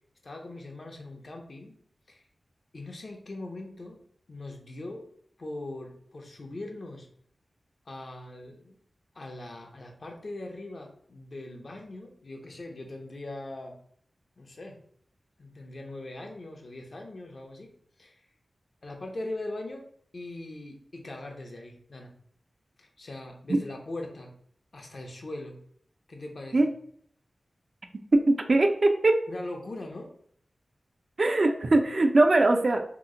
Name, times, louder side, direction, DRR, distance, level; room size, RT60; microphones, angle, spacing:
voice 1, 0.2-1.8 2.1-2.2 2.7-4.0 4.3-5.1 5.4-7.1 7.9-8.8 9.1-13.7 14.4-14.8 15.4-17.7 18.0-18.2 18.8-19.9 20.1-22.1 22.8-24.3 24.7-25.6 26.1-26.6 29.3-30.1, left 2 dB, 60° left, 2 dB, 0.6 m, -40 dB
voice 2, 28.1-29.2 31.2-32.8, right 2 dB, 55° right, 5 dB, 0.4 m, -21 dB
2.9 x 2.0 x 3.6 m, 0.62 s
wide cardioid pair, 60°, 0 cm